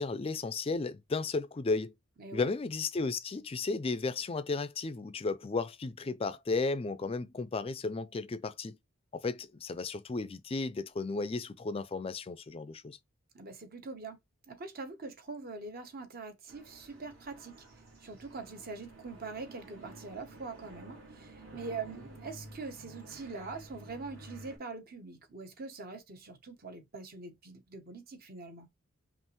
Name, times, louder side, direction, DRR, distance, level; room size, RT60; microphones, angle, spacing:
voice 1, 0.0-1.9 2.3-8.8 9.1-13.0, left 3 dB, 25° left, 0.4 m, -34 dB
voice 2, 2.2-2.5 13.3-14.2 14.5-17.6 18.0-28.7, right 4 dB, 45° right, 0.9 m, -43 dB
sound 1, 16.5-24.6, right 1 dB, 65° right, 2.2 m, -51 dB
5.5 x 2.5 x 3.0 m
head